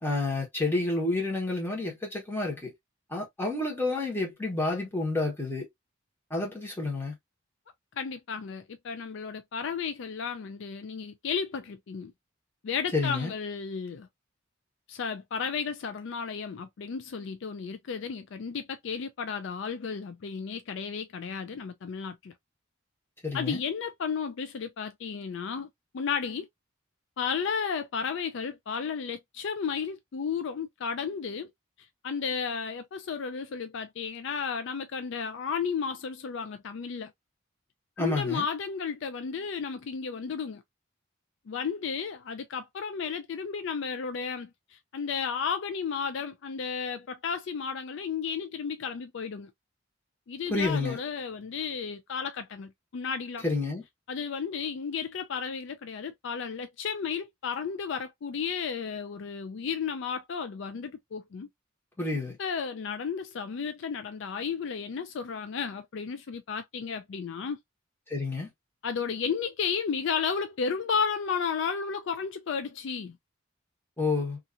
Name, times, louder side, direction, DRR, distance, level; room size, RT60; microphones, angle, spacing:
voice 1, 0.0-2.7 3.1-5.7 6.3-7.1 12.9-13.3 23.2-23.6 38.0-38.4 50.5-51.0 53.4-53.8 62.0-62.4 68.1-68.5 74.0-74.4, left 2 dB, 10° left, 1.2 m, -29 dB
voice 2, 8.0-12.1 12.6-14.1 14.9-22.3 23.3-26.5 27.2-31.5 32.0-37.1 38.0-40.6 41.5-49.5 50.3-53.4 54.1-61.5 62.4-67.6 68.8-73.2, left 6 dB, 60° left, 0.4 m, -33 dB
2.8 x 2.5 x 2.5 m
head